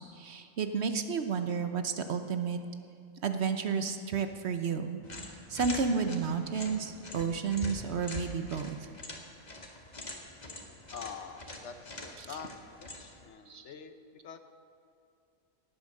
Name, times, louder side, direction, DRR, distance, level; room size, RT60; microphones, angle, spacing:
voice 1, 0.1-2.6 3.2-5.0 5.5-8.8 12.2-12.3 13.5-13.7, right 5 dB, 55° right, 8 dB, 1.0 m, -31 dB
sound 1, 5.0-13.3, left 2 dB, 30° left, 1.5 m, -44 dB
voice 2, 10.9-12.5 12.8-14.4, left 7 dB, 60° left, 9 dB, 1.0 m, -45 dB
18.0 x 8.5 x 6.5 m, 2.6 s
omnidirectional pair, 1.4 m